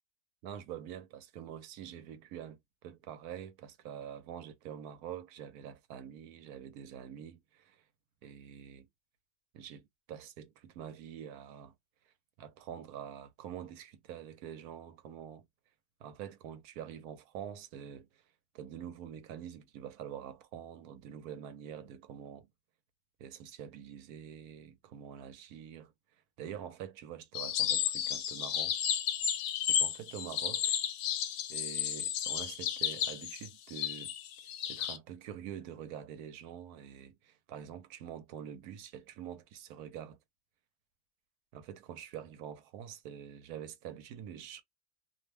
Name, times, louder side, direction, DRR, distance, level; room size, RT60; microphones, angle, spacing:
voice 1, 0.4-7.8 8.2-8.9 9.5-11.7 12.4-15.5 16.0-18.2 18.5-22.5 23.2-25.9 26.4-28.8 29.7-30.8 31.5-34.1 34.7-40.2 41.5-44.6, right 9 dB, 80° right, 1.1 m, -46 dB
sound 1, 27.3-35.0, left 10 dB, 80° left, 1.1 m, -33 dB
2.7 x 2.1 x 3.1 m
omnidirectional pair, 1.6 m